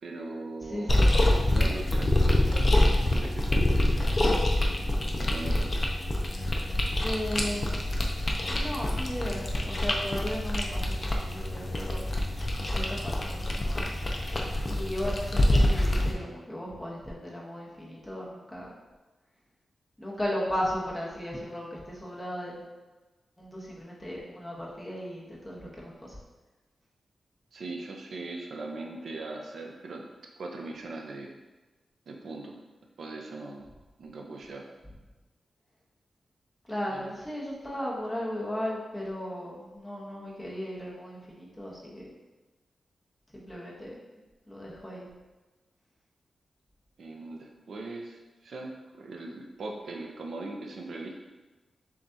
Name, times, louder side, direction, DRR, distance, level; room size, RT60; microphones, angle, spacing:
voice 1, 0.0-1.1 1.5-3.6 5.1-5.8 27.5-30.0 30.4-31.4 32.1-32.6 33.0-33.7 34.0-34.7 36.9-37.1 47.0-51.1, right 2 dB, 75° right, 2 dB, 0.6 m, -40 dB
voice 2, 0.6-1.1 7.0-8.1 8.4-12.0 12.7-13.9 14.6-18.7 20.0-22.7 23.4-26.1 36.6-42.1 43.3-44.0 44.5-45.1, equal, 10° left, -5 dB, 1.0 m, -36 dB
sound 1, 0.9-16.1, left 1 dB, 30° left, 0.5 m, -26 dB
7.1 x 2.4 x 2.7 m, 1.2 s
wide cardioid pair, 125°, 0 cm